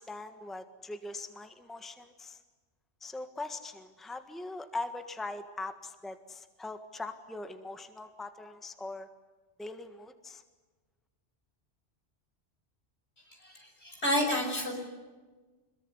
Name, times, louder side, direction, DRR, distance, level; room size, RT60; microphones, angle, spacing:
voice 1, 0.0-2.4 3.0-9.1 9.6-10.4, left 2 dB, ahead, 9 dB, 1.5 m, -41 dB
voice 2, 13.4-14.7, left 1 dB, 70° left, 2 dB, 7.0 m, -30 dB
26.5 x 22.0 x 9.9 m, 1.3 s
omnidirectional pair, 1.2 m